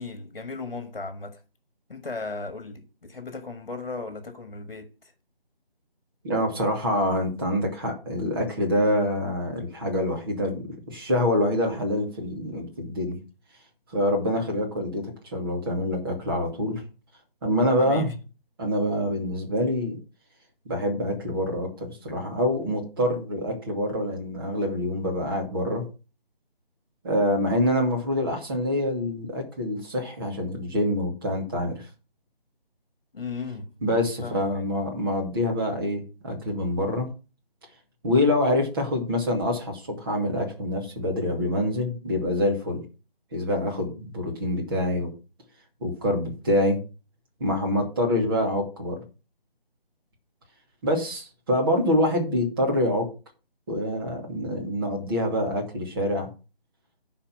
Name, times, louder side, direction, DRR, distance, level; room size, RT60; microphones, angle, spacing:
voice 1, 0.0-1.4 1.9-5.1 17.8-18.1 33.1-33.7 34.2-34.7, left 3 dB, 55° left, 1.6 m, -36 dB
voice 2, 6.2-13.2 13.9-15.0 15.3-16.8 17.4-18.1 18.6-20.0 20.7-25.8 27.0-31.8 33.8-37.1 38.0-42.8 43.3-45.1 45.8-46.8 47.4-49.0 50.8-53.1 53.7-56.3, left 1 dB, 25° right, 2.5 m, -26 dB
11.0 x 4.4 x 5.8 m
figure-of-eight pair, 160°, 30 cm